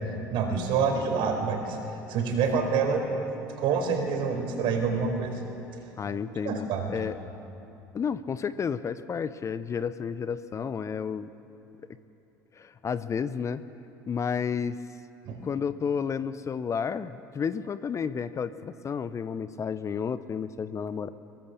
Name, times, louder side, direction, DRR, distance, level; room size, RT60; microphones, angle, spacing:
voice 1, 0.3-1.8 2.1-3.1 3.6-5.3 6.4-6.9 15.2-15.4, right 5 dB, 55° right, 4 dB, 4.5 m, -27 dB
voice 2, 6.0-7.2 7.9-11.3 12.5-13.6 14.1-14.8 15.4-21.1, left 6 dB, 30° left, 14 dB, 0.8 m, -31 dB
23.0 x 21.5 x 7.1 m, 2.9 s
figure-of-eight pair, 65°, 10 cm